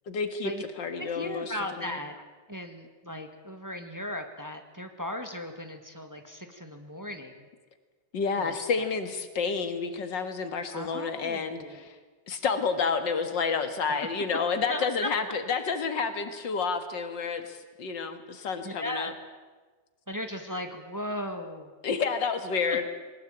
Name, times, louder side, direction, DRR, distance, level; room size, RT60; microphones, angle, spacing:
voice 1, 0.1-0.5 0.8-2.0 8.1-11.9 12.3-19.1 21.8-22.8, left 5 dB, 85° left, 9 dB, 2.5 m, -30 dB
voice 2, 1.0-2.1 2.5-7.5 8.4-8.9 10.7-11.8 14.7-15.1 18.6-19.1 20.1-21.7 22.7-22.8, left 1 dB, 10° right, 6 dB, 1.6 m, -37 dB
21.0 x 19.5 x 9.0 m, 1.3 s
omnidirectional pair, 1.9 m